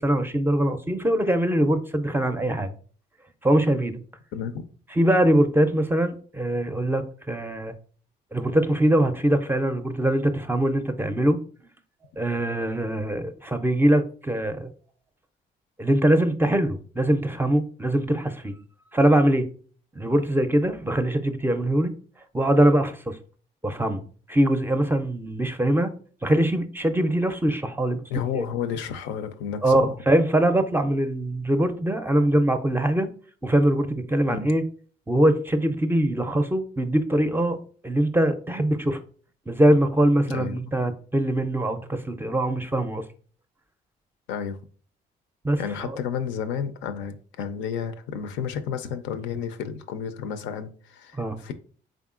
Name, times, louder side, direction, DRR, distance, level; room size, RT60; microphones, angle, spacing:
voice 1, 0.0-2.7 3.4-4.0 5.0-7.7 8.3-11.4 12.2-14.7 15.8-18.6 18.9-19.5 20.0-21.9 22.3-23.2 23.6-24.0 24.3-25.9 26.2-28.0 28.3-28.4 29.6-33.1 33.4-34.6 35.1-37.6 37.8-39.0 39.5-43.0 45.4-46.0 51.2-51.4, right 1 dB, 10° right, 8 dB, 0.4 m, -22 dB
voice 2, 4.3-4.7 28.1-29.9 34.3-34.5 40.3-40.6 44.3-44.6 45.6-51.5, left 7 dB, 80° left, 9 dB, 0.4 m, -31 dB
3.6 x 3.6 x 2.4 m, 0.43 s
supercardioid pair, 65°, 19 cm